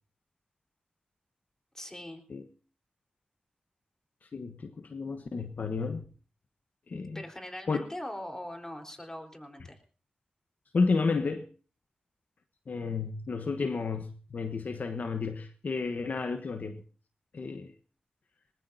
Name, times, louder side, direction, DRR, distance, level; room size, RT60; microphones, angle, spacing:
voice 1, 1.7-2.2 7.1-9.8, left 1 dB, 20° left, 4.1 m, -41 dB
voice 2, 4.3-6.0 6.9-7.2 7.7-7.8 10.7-11.5 12.7-16.8 17.3-17.7, left 4 dB, 65° left, 1.1 m, -31 dB
21.0 x 20.0 x 2.7 m
cardioid pair, 40°, 3 cm